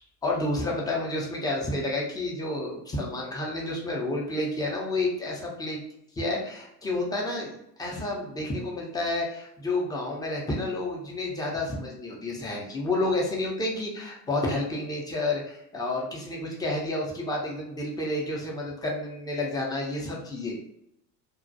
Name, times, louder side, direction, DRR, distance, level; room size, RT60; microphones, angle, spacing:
voice 1, 0.2-5.8 6.2-20.6, left 2 dB, 10° left, -2 dB, 0.5 m, -30 dB
2.2 x 2.1 x 2.6 m, 0.78 s
figure-of-eight pair, 70°, 49 cm